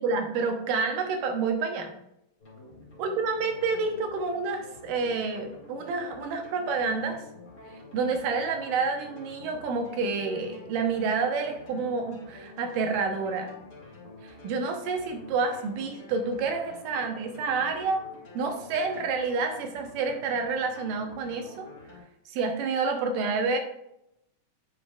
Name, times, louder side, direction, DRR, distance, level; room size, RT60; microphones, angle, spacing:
voice 1, 0.0-1.9 3.0-7.2 7.7-13.5 14.2-18.0 18.3-21.7 22.3-23.6, right 4 dB, 85° right, 4 dB, 2.6 m, -29 dB
sound 1, 2.4-22.0, left 2 dB, 30° left, 2.5 m, -48 dB
9.6 x 5.1 x 2.4 m, 0.82 s
omnidirectional pair, 3.8 m